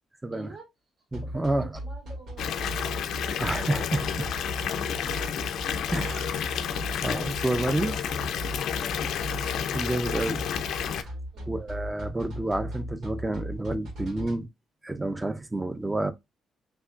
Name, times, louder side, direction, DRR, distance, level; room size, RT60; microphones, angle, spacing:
voice 1, 0.3-0.7 1.2-3.0 5.0-5.5 5.8-6.5 8.5-9.6 11.3-11.6, right 2 dB, 65° right, 2.7 m, -48 dB
voice 2, 1.1-1.7 3.4-4.3 5.9-6.3 7.0-8.0 9.7-10.4 10.8-11.1 11.5-14.5 14.8-16.1, right 2 dB, 15° right, 0.6 m, -29 dB
sound 1, 1.1-14.3, equal, 80° right, 2.0 m, -37 dB
Water tap faucet / Bathtub (filling or washing) / Fill (with liquid), 2.4-11.0, left 9 dB, 75° left, 0.5 m, -31 dB
5.7 x 2.9 x 2.4 m
cardioid pair, 90°, 0 cm